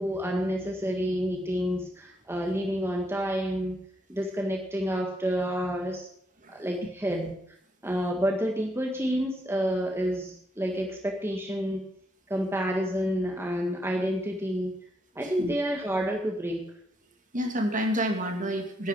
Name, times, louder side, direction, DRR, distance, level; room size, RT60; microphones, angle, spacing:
voice 1, 0.0-3.8 4.1-6.1 6.5-7.2 7.8-11.9 12.3-14.8 15.2-16.7, equal, 10° right, 0 dB, 1.8 m, -29 dB
voice 2, 15.2-15.5 17.3-18.9, equal, 35° right, 3 dB, 2.3 m, -29 dB
11.0 x 10.0 x 7.5 m, 0.66 s
head